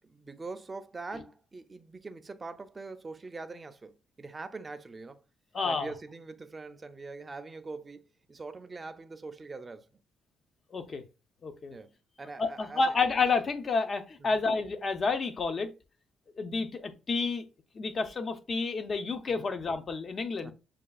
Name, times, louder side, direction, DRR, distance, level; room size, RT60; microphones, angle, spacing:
voice 1, 0.0-5.2 5.6-10.0 11.7-11.9 12.2-12.9 14.2-14.4 19.3-19.5 20.4-20.5, right 3 dB, 25° right, 0.5 m, -43 dB
voice 2, 5.5-5.9 10.7-11.0 11.4-11.8 12.4-15.7 16.4-17.4 17.7-20.5, left 4 dB, 40° left, 0.6 m, -30 dB
6.3 x 2.3 x 2.3 m
cardioid pair, 90°, 0 cm